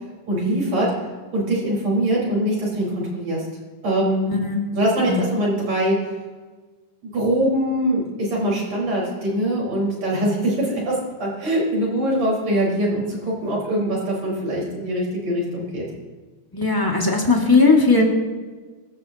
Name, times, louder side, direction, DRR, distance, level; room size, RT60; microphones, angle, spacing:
voice 1, 0.3-0.9 1.3-3.5 3.8-4.2 4.7-6.0 7.0-15.8, right 1 dB, 60° right, -4 dB, 6.1 m, -23 dB
voice 2, 16.5-18.0, left 3 dB, 10° left, -1 dB, 1.6 m, -17 dB
25.0 x 13.0 x 3.0 m, 1.4 s
omnidirectional pair, 3.5 m